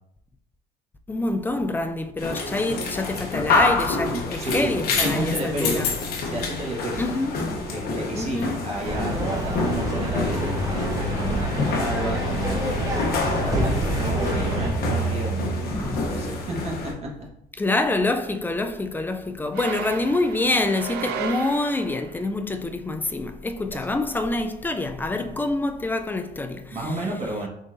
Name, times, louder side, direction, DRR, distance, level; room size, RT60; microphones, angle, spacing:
voice 1, 1.1-5.9 7.0-7.4 8.2-8.6 9.2-9.3 15.7-16.2 17.6-26.7, left 2 dB, 10° left, 0.3 m, -26 dB
sound 1, 2.2-16.9, left 3 dB, 65° left, 0.9 m, -27 dB
voice 2, 4.0-4.7 5.0-5.8 6.2-7.1 7.7-17.1 23.7-23.8 26.7-27.5, right 2 dB, 40° right, 1.2 m, -32 dB
sound 2, 8.8-14.7, right 1 dB, 20° right, 0.8 m, -28 dB
sound 3, 19.5-22.2, right 7 dB, 75° right, 0.5 m, -34 dB
3.9 x 3.8 x 2.5 m
cardioid pair, 110°, 17 cm